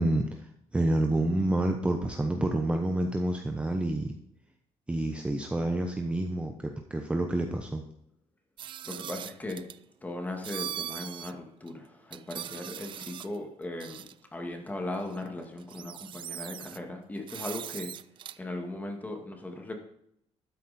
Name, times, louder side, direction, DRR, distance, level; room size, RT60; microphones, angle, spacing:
voice 1, 0.0-4.2 4.9-7.8, right 1 dB, 10° right, 4 dB, 0.9 m, -28 dB
sound 1, 8.6-9.8 10.4-11.3 11.7-11.8 12.1-13.4 13.8-14.1 15.2-15.3 15.6-16.8 17.3-18.4, right 10 dB, 45° right, 0.4 m, -40 dB
voice 2, 8.8-9.7 10.0-17.9 18.4-19.7, left 2 dB, 15° left, 3 dB, 2.1 m, -38 dB
13.0 x 9.2 x 4.3 m, 0.73 s
cardioid pair, 130°, 11 cm